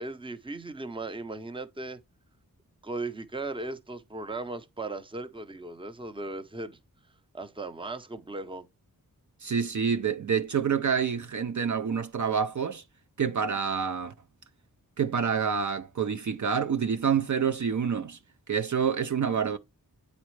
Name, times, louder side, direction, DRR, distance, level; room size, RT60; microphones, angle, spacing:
voice 1, 0.0-2.0 2.8-6.8 7.3-8.7, right 2 dB, 15° right, 0.6 m, -37 dB
voice 2, 9.4-12.8 13.2-14.1 15.0-18.2 18.5-19.6, right 7 dB, 55° right, 0.5 m, -27 dB
8.4 x 4.1 x 3.1 m
wide cardioid pair, 65°, 35 cm